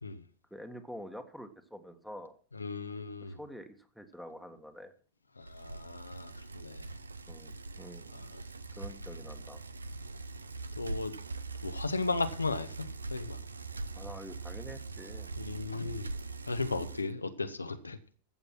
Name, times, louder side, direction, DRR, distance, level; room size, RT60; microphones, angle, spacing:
voice 1, 0.5-2.4 3.2-4.9 7.3-8.2 8.7-9.6 13.9-15.3, equal, ahead, 1.7 m, -47 dB
voice 2, 2.5-3.4 5.4-6.9 8.1-8.3 10.8-11.1 11.6-13.4 15.4-16.1 16.5-18.0, left 3 dB, 80° left, 1.1 m, -36 dB
Bicycle, 5.4-17.1, right 3 dB, 75° right, 0.8 m, -42 dB
14.5 x 7.9 x 6.0 m
figure-of-eight pair, 90°, 0 cm